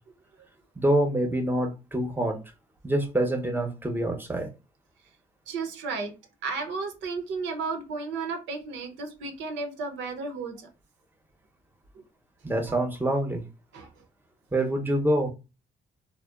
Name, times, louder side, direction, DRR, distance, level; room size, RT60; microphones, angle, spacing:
voice 1, 0.8-2.4 2.8-4.5 12.4-13.4 14.5-15.3, right 1 dB, 10° right, 0.6 m, -26 dB
voice 2, 5.5-6.1 6.4-10.7 13.7-13.9, right 4 dB, 85° right, 0.7 m, -33 dB
2.8 x 2.0 x 2.3 m
supercardioid pair, 65°, 18 cm